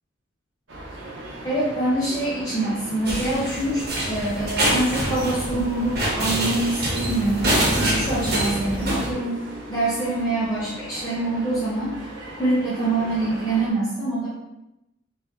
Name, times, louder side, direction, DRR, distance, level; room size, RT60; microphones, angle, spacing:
sound 1, 0.7-13.7, right 1 dB, 90° right, 0.9 m, -39 dB
voice 1, 1.4-7.5 7.8-9.4 9.7-11.9 12.4-14.3, right 2 dB, 20° left, -9 dB, 0.8 m, -25 dB
sound 2, 3.1-9.1, right 1 dB, 55° right, 1.1 m, -25 dB
3.5 x 3.1 x 3.1 m, 0.91 s
head